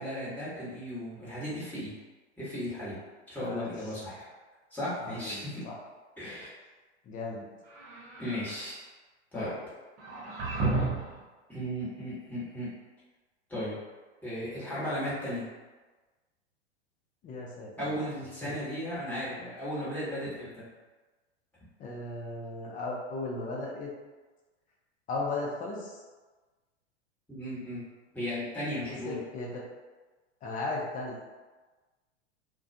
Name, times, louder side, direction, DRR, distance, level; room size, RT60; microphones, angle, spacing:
voice 1, 0.0-1.9 2.4-3.0 3.3-4.3 4.7-5.6 6.2-6.5 8.2-8.8 9.3-9.5 11.5-12.7 13.5-13.7 14.2-15.5 17.8-20.7 27.3-27.8 28.1-29.2, equal, 5° left, -11 dB, 1.2 m, -35 dB
voice 2, 3.4-3.7 5.0-5.7 7.1-7.5 9.3-9.6 17.2-18.0 18.4-18.5 21.8-23.9 25.1-26.0 29.1-29.5 30.4-31.2, left 2 dB, 25° left, -3 dB, 0.5 m, -36 dB
sound 1, 7.6-8.5 10.0-11.2, right 3 dB, 35° right, 0.7 m, -32 dB
2.3 x 2.2 x 2.6 m, 1.3 s
hypercardioid pair, 100°, 35 cm